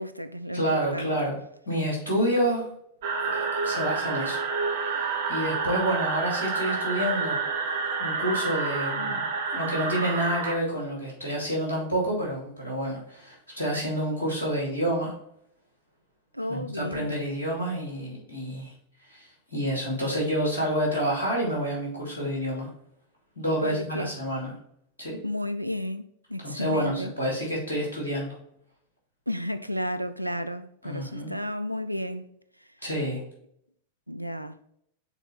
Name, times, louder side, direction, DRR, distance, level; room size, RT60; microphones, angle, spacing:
voice 1, 0.0-1.3 16.3-17.3 23.6-24.1 25.2-27.1 29.3-32.3 34.1-34.6, left 1 dB, 90° right, 0.4 m, -32 dB
voice 2, 0.5-1.4 1.7-2.7 3.2-4.4 4.8-7.4 8.0-9.2 9.5-15.2 16.5-18.7 19.1-22.7 23.4-24.5 25.0-25.2 26.4-28.4 30.8-31.4 32.8-33.2, equal, 80° left, 2.6 m, -29 dB
sound 1, 3.0-10.5, right 4 dB, 55° right, 0.8 m, -29 dB
5.8 x 4.1 x 4.1 m
figure-of-eight pair, 90°, 0 cm